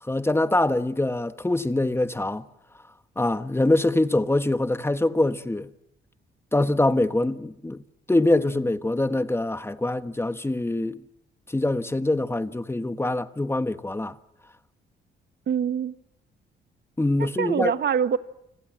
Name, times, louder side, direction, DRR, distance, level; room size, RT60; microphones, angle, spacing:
voice 1, 0.0-2.4 3.2-5.7 6.5-7.8 8.1-11.0 11.5-14.2 17.0-17.7, left 2 dB, 10° left, 1.3 m, -24 dB
voice 2, 15.5-15.9 17.2-18.2, right 8 dB, 60° right, 1.4 m, -24 dB
29.5 x 26.5 x 7.4 m
cardioid pair, 90°, 20 cm